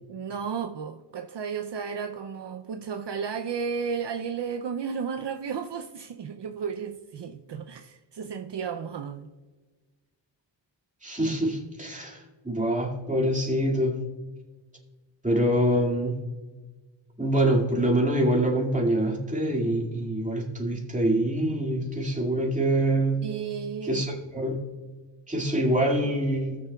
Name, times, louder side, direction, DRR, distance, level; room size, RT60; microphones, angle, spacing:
voice 1, 0.1-9.3 23.2-24.0, right 6 dB, 65° right, 0.6 m, -33 dB
voice 2, 11.0-13.9 15.2-16.2 17.2-23.2 23.8-24.6 25.3-26.6, right 1 dB, 15° right, 2.0 m, -25 dB
18.0 x 6.8 x 2.3 m
wide cardioid pair, 95°, 45 cm